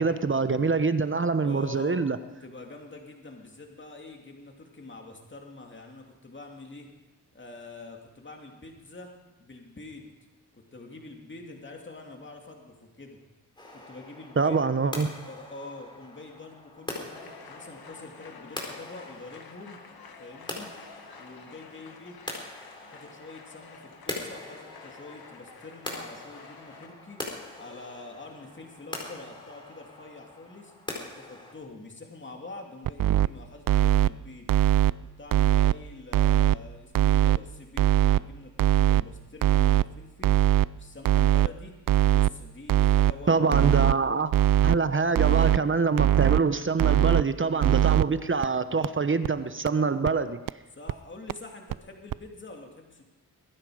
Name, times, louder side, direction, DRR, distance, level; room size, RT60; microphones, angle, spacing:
voice 1, 0.0-2.2 14.4-15.1 43.3-44.3 44.6-50.4, right 4 dB, 30° right, 11 dB, 0.9 m, -25 dB
voice 2, 1.2-2.1 2.4-6.9 7.3-9.1 9.4-10.1 10.5-13.2 13.7-14.6 15.2-19.8 20.2-20.7 21.2-22.2 22.8-27.2 27.6-30.7 31.1-34.5 35.2-40.4 40.7-41.8 42.0-44.0 50.8-53.0, left 2 dB, 30° left, 2 dB, 2.6 m, -45 dB
sound 1, 13.6-31.5, left 1 dB, 10° left, 4.3 m, -42 dB
sound 2, 17.1-26.9, left 5 dB, 65° left, 1.7 m, -50 dB
sound 3, 32.9-33.3 33.7-34.1 34.5-34.9 35.3-35.7 36.1-36.5 36.9-37.4 37.8-38.2 38.6-39.0 39.4-39.8 40.2-40.7 41.1-41.5 41.9-42.3 42.7-43.1 43.5-43.9 44.3-44.8 45.2-45.6 46.0-46.4 46.8-47.2 47.6-48.0 48.4-48.5 48.8-48.9 49.2-49.3 49.7-49.8 50.1-50.2 50.5-50.6 50.9-51.0 51.3-51.4 51.7-51.8 52.1-52.2, right 12 dB, 55° right, 0.5 m, -20 dB
22.0 x 10.0 x 5.0 m, 1.1 s
cardioid pair, 60°, 40 cm